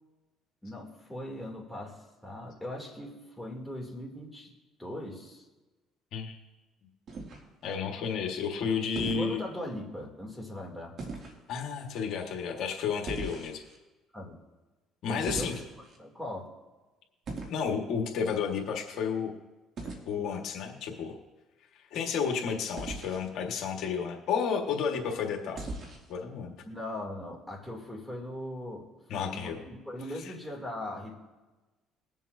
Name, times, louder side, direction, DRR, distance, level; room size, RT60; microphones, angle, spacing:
voice 1, 0.6-4.5 4.8-5.4 8.6-11.0 14.1-14.4 15.1-15.5 16.0-16.5 26.7-28.9 29.2-31.2, left 1 dB, 5° left, -2 dB, 2.8 m, -39 dB
sound 1, 7.1-7.7 8.9-9.3 11.0-11.4 13.1-13.8 15.3-16.0 17.3-17.6 19.8-20.0 22.8-23.3 25.5-26.1, right 3 dB, 50° right, 2.5 m, -39 dB
voice 2, 7.6-9.4 11.5-13.6 15.0-15.5 17.5-19.3 20.1-21.1 21.9-25.6 26.1-26.5 29.1-29.6 30.2-30.3, left 6 dB, 65° left, 1 dB, 1.6 m, -31 dB
22.0 x 7.4 x 2.7 m, 1.2 s
supercardioid pair, 90°, 0 cm